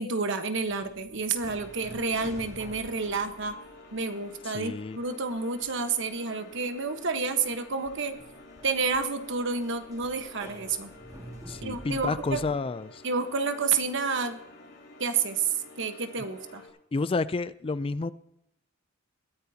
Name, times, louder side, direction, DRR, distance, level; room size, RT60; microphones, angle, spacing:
voice 1, 0.0-3.5 3.9-8.1 8.6-10.9 11.6-12.4 13.0-14.4 15.0-16.6, right 4 dB, 65° right, 1.3 m, -29 dB
sound 1, 0.7-4.5 4.8-5.8 6.1-6.2 6.8-12.5, right 1 dB, 15° right, 2.8 m, -48 dB
sound 2, 1.5-16.7, left 2 dB, 70° left, 5.2 m, -50 dB
voice 2, 4.4-5.0 11.5-13.0 16.9-18.1, left 3 dB, 25° left, 0.4 m, -30 dB
21.5 x 14.5 x 2.9 m
head